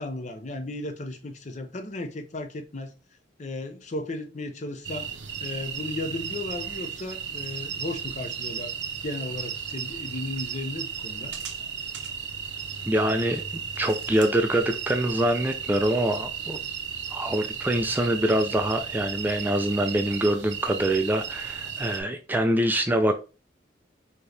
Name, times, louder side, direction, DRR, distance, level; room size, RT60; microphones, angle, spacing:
voice 1, 0.0-2.9 3.4-5.1 5.4-8.7 9.0-11.3, left 2 dB, 40° left, 0.6 m, -35 dB
sound 1, 4.8-22.0, right 7 dB, 80° right, 0.7 m, -35 dB
voice 2, 12.9-13.4 13.8-16.6 17.1-23.2, right 1 dB, 10° right, 0.3 m, -24 dB
4.4 x 2.9 x 3.2 m
head